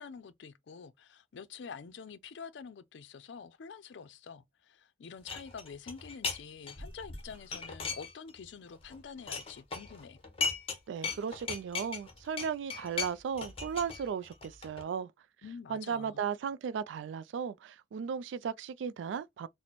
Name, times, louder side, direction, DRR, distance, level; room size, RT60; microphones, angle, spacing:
voice 1, 0.0-10.2 15.4-16.2, left 6 dB, 70° left, 0.4 m, -47 dB
sound 1, 5.3-6.4 6.7-8.4 8.7-10.8 11.0-14.8, left 4 dB, 30° left, 0.8 m, -38 dB
voice 2, 10.9-15.1 15.7-19.5, right 7 dB, 80° right, 0.3 m, -36 dB
4.1 x 2.0 x 2.9 m
head